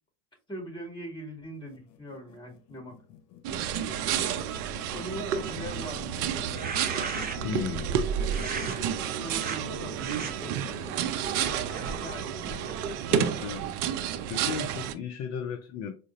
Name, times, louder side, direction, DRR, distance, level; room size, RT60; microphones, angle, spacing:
voice 1, 0.5-3.0 3.5-4.4 4.9-6.8 8.2-11.0 12.0-12.4, equal, 10° left, 1.9 m, -42 dB
sound 1, 1.6-11.7, left 9 dB, 90° left, 0.7 m, -47 dB
sound 2, 3.4-14.9, right 9 dB, 70° right, 0.6 m, -30 dB
sound 3, 6.4-7.6 8.3-8.8 9.3-9.6 10.0-10.3 10.9-13.5, right 5 dB, 20° right, 0.7 m, -38 dB
voice 2, 7.4-7.9 12.5-12.6 13.1-13.7 14.3-15.9, left 7 dB, 35° left, 0.4 m, -35 dB
4.6 x 2.2 x 2.6 m
hypercardioid pair, 90°, 47 cm